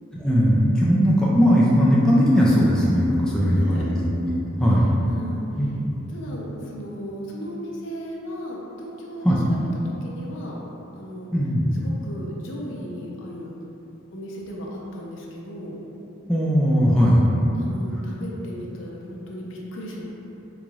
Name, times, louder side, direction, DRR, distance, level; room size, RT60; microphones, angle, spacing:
voice 1, 0.2-3.9 4.2-4.9 5.6-5.7 9.2-9.4 11.3-11.7 16.3-17.2, equal, 5° left, -7 dB, 0.3 m, -19 dB
voice 2, 3.4-3.9 5.1-5.4 6.1-10.6 10.9-11.3 11.8-13.5 14.1-15.8 17.5-20.0, equal, 65° left, -3 dB, 0.5 m, -36 dB
3.8 x 3.1 x 2.3 m, 2.9 s
head